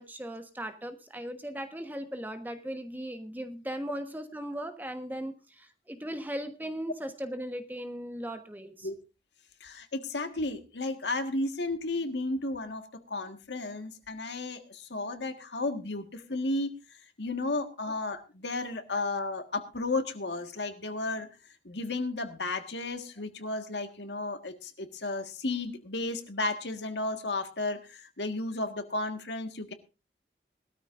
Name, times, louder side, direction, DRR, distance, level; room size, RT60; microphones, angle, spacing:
voice 1, 0.0-8.9 17.9-18.0, equal, 10° right, 7 dB, 1.2 m, -38 dB
voice 2, 9.6-21.3 21.7-29.7, left 2 dB, 85° left, 7 dB, 1.7 m, -33 dB
20.5 x 13.0 x 2.6 m, 0.29 s
head